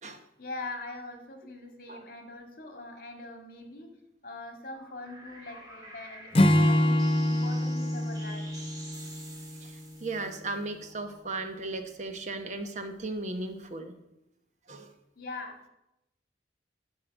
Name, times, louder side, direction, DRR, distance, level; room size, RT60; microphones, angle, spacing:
voice 1, 0.4-3.9 4.2-8.5 15.2-15.6, left 2 dB, 55° left, 4 dB, 1.9 m, -42 dB
sound 1, 4.7-11.2, right 1 dB, 20° right, 2.1 m, -49 dB
Acoustic guitar / Strum, 6.3-9.8, left 1 dB, 30° left, 0.7 m, -25 dB
voice 2, 10.0-13.9 14.7-14.9, right 2 dB, 40° right, 7 dB, 0.9 m, -36 dB
11.0 x 5.6 x 8.2 m, 0.88 s
head